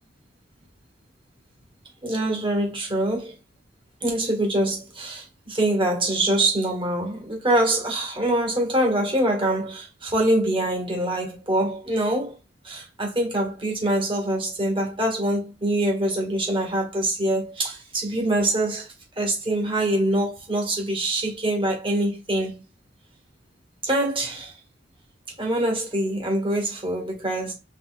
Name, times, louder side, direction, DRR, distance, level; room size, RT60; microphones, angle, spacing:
voice 1, 2.0-3.3 4.0-12.3 12.6-18.9 19.2-22.6 23.8-24.5 25.4-27.5, right 1 dB, 30° right, 1.8 m, -24 dB
5.3 x 3.6 x 2.4 m
head